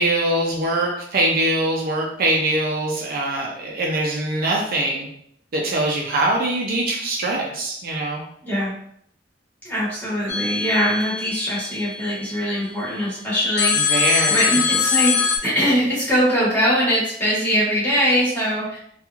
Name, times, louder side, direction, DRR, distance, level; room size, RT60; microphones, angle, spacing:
voice 1, 0.0-5.1 5.5-8.2 13.8-14.5, right 1 dB, 55° right, -1 dB, 0.4 m, -22 dB
voice 2, 9.6-14.0 14.3-18.8, equal, 10° left, -8 dB, 1.3 m, -22 dB
sound 1, 10.3-12.5 13.6-15.4, left 6 dB, 80° left, 0.5 m, -23 dB
2.9 x 2.3 x 2.3 m, 0.67 s
head